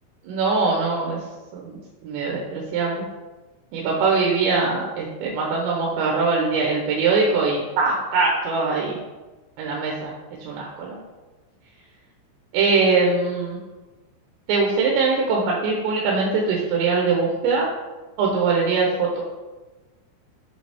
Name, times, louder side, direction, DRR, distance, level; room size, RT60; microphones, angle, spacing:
voice 1, 0.2-1.2 1.5-3.1 3.7-9.0 9.6-10.1 10.4-11.0 12.5-13.6 14.5-17.7 18.2-19.2, right 4 dB, 85° right, -1 dB, 3.1 m, -22 dB
7.3 x 5.2 x 3.4 m, 1.2 s
omnidirectional pair, 5.1 m